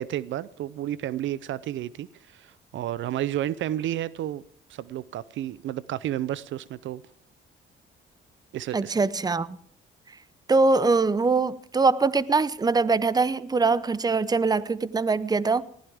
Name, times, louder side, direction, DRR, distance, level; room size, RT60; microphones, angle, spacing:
voice 1, 0.0-4.4 4.7-7.0 8.5-8.9, right 12 dB, 70° right, 0.6 m, -31 dB
voice 2, 8.7-9.6 10.5-15.6, right 4 dB, 20° right, 0.7 m, -23 dB
19.5 x 15.5 x 3.5 m
cardioid pair, 90°, 20 cm